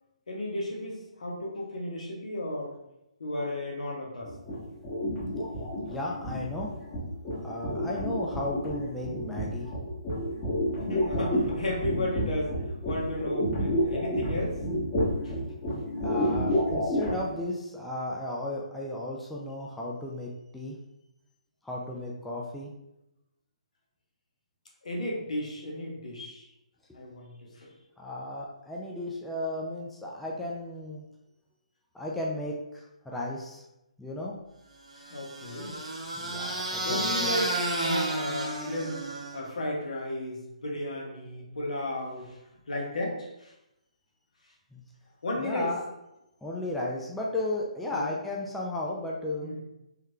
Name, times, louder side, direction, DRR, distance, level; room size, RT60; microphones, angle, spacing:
voice 1, 0.3-2.8 3.2-4.3 10.8-14.6 15.2-15.3 24.8-26.5 26.9-27.7 35.1-35.8 36.8-39.0 39.3-42.4 42.7-43.5 45.2-45.7 47.9-48.1 49.4-49.6, left 1 dB, 70° left, 0 dB, 0.9 m, -34 dB
sound 1, 4.2-17.3, equal, 25° left, 1.1 m, -30 dB
voice 2, 5.8-6.7 7.4-9.7 16.0-20.8 21.6-22.7 28.0-31.0 31.9-33.6 34.0-34.4 36.1-37.3 44.7-44.8 45.4-45.8 46.4-49.5, left 1 dB, 5° left, -4 dB, 0.3 m, -34 dB
sound 2, 35.0-39.5, right 1 dB, 85° right, 0.9 m, -32 dB
3.6 x 3.1 x 2.2 m, 0.89 s
figure-of-eight pair, 140°, 4 cm